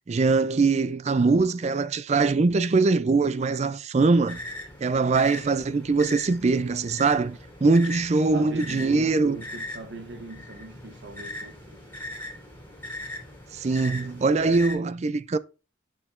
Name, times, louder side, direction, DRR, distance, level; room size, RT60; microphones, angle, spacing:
voice 1, 0.1-4.4 4.8-9.4 13.5-15.4, right 3 dB, 35° right, 0.4 m, -22 dB
sound 1, 4.1-14.7, left 1 dB, 10° left, 3.2 m, -40 dB
voice 2, 8.1-11.9, right 2 dB, 75° right, 1.0 m, -41 dB
7.1 x 6.5 x 2.5 m
head